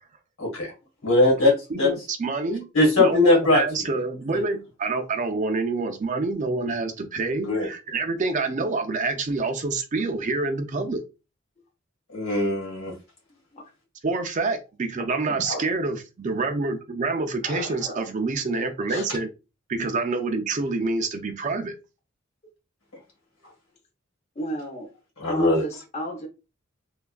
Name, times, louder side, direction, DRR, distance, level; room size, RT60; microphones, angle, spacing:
voice 1, 0.4-0.7 1.0-1.5 1.8-1.9 2.7-3.6 4.3-4.4 7.4-7.7 12.1-12.9 25.2-25.6, left 2 dB, 75° left, 1.6 m, -20 dB
voice 2, 1.7-2.7 3.0-11.0 14.0-19.3 19.7-21.7, right 3 dB, 35° right, 0.4 m, -27 dB
voice 3, 15.3-15.6 17.4-18.0 18.9-19.0 24.4-24.9 25.3-26.3, right 1 dB, 35° left, 0.7 m, -33 dB
3.3 x 2.2 x 2.3 m
head